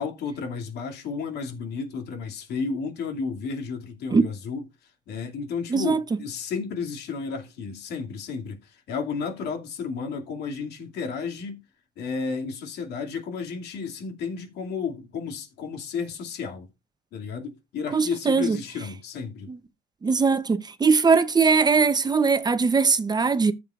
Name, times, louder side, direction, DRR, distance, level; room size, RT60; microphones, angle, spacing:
voice 1, 0.0-4.6 5.1-11.6 12.0-16.7 17.1-19.5, left 5 dB, 75° left, 2.5 m, -32 dB
voice 2, 5.7-6.0 17.9-18.6 19.5-19.6 20.0-23.5, right 5 dB, 25° right, 0.8 m, -21 dB
14.0 x 7.4 x 2.5 m
cardioid pair, 110°, 17 cm